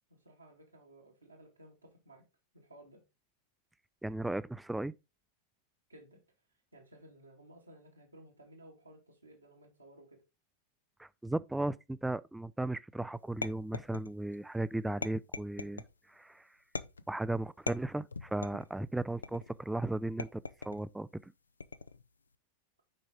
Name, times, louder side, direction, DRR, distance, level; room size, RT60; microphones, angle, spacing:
voice 1, 0.1-2.2 2.5-3.0 5.9-6.2 6.7-10.2, right 1 dB, 85° right, 2.4 m, -57 dB
voice 2, 4.0-4.9 11.0-15.8 16.1-16.5 17.1-21.3, right 2 dB, 5° right, 0.3 m, -36 dB
sound 1, 13.4-14.4 15.0-15.9 16.8-17.2 17.7-18.7 19.2-19.6 20.2-20.9 21.6-22.1, left 4 dB, 75° left, 0.4 m, -41 dB
7.5 x 5.2 x 3.8 m
figure-of-eight pair, 90°, 0 cm